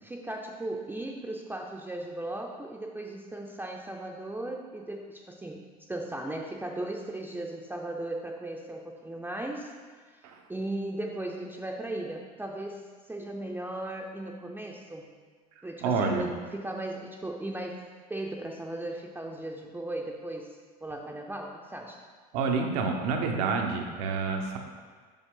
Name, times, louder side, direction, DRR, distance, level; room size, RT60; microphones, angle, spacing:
voice 1, 0.0-9.7 10.5-15.1 15.6-17.8 18.1-22.0, right 1 dB, 10° right, 0 dB, 0.6 m, -37 dB
voice 2, 15.8-16.2 22.3-24.6, right 4 dB, 70° right, 3 dB, 0.8 m, -28 dB
5.8 x 5.4 x 3.7 m, 1.5 s
hypercardioid pair, 75°, 20 cm